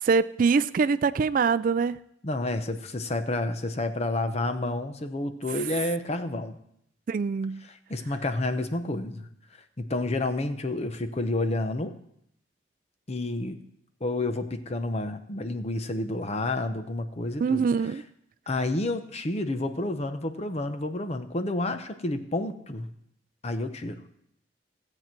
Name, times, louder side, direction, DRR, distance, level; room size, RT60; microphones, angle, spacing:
voice 1, 0.0-2.0 7.1-7.7 17.4-18.0, right 5 dB, 50° right, 15 dB, 0.3 m, -24 dB
voice 2, 2.2-6.6 7.6-9.3 9.8-12.0 13.1-13.6 14.0-17.6 18.5-22.9 23.4-24.0, left 2 dB, 35° left, 9 dB, 0.8 m, -30 dB
16.0 x 7.9 x 4.5 m, 0.74 s
head